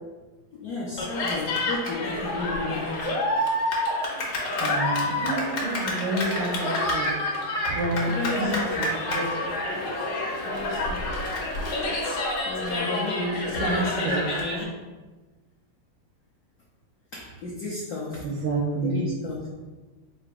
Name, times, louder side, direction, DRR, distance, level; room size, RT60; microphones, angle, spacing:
voice 1, 0.5-3.0 8.1-8.8 10.4-11.0 12.5-14.7 17.1-18.3 18.8-19.5, left 2 dB, 80° left, -5 dB, 0.8 m, -32 dB
Cheering, 1.0-14.6, left 1 dB, 60° left, 1.2 m, -28 dB
voice 2, 4.6-7.1 7.7-9.5 13.6-14.2 18.2-19.0, right 2 dB, 80° right, -1 dB, 1.5 m, -29 dB
3.9 x 2.5 x 4.7 m, 1.2 s
omnidirectional pair, 2.4 m